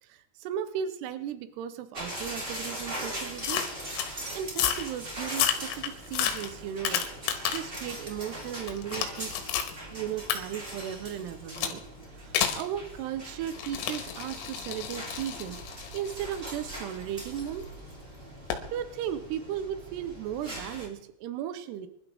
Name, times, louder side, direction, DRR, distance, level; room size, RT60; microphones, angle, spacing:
voice 1, 0.0-3.7 4.3-7.0 7.5-9.3 9.9-11.8 12.2-15.6 15.9-17.7 18.7-21.9, right 9 dB, 90° right, 10 dB, 2.3 m, -36 dB
sound 1, 1.9-20.9, right 1 dB, 20° right, 1.8 m, -41 dB
sound 2, 3.4-4.1 4.5-4.9 5.3-7.8 8.2-9.7 10.3-10.4 11.6-11.8 12.4-12.7 13.5-17.5 18.5-18.7, left 9 dB, 90° left, 4.1 m, -31 dB
25.0 x 12.0 x 3.5 m, 0.80 s
omnidirectional pair, 5.9 m